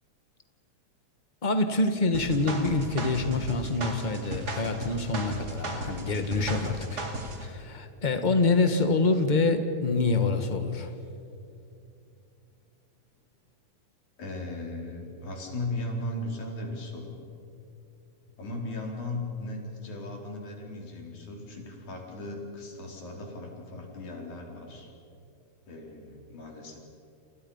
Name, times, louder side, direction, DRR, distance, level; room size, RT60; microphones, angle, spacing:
voice 1, 1.4-7.0 7.4-10.9, left 3 dB, 25° left, 7 dB, 1.1 m, -26 dB
sound 1, 2.1-7.5, right 1 dB, 35° right, 2.7 m, -35 dB
voice 2, 14.2-17.2 18.4-24.9 25.7-26.8, left 2 dB, 80° left, 0 dB, 5.4 m, -37 dB
30.0 x 28.5 x 5.6 m, 2.7 s
omnidirectional pair, 3.3 m